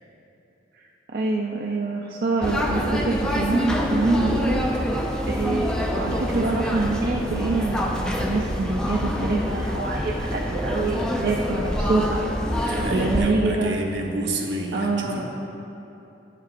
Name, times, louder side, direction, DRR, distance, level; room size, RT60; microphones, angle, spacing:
voice 1, 1.1-4.7 5.3-12.2 12.5-13.8 14.7-15.3, right 3 dB, 55° right, -2 dB, 0.4 m, -25 dB
sound 1, 2.4-13.2, equal, 5° left, 0.4 m, -26 dB
voice 2, 12.6-15.3, right 1 dB, 70° right, 1 dB, 0.8 m, -30 dB
10.0 x 7.5 x 2.5 m, 2.9 s
head